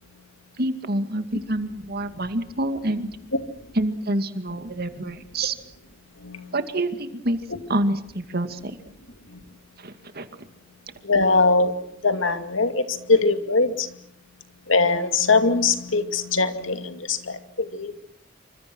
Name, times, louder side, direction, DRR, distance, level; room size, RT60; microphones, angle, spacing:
voice 1, 0.6-3.1 3.7-5.6 6.5-7.4 7.7-8.8 9.8-10.3, right 1 dB, 55° right, 9 dB, 2.2 m, -27 dB
voice 2, 6.2-6.5 9.3-9.4 11.0-14.0 14.7-17.9, left 3 dB, 80° left, 8 dB, 2.5 m, -22 dB
28.0 x 25.5 x 6.3 m, 0.71 s
head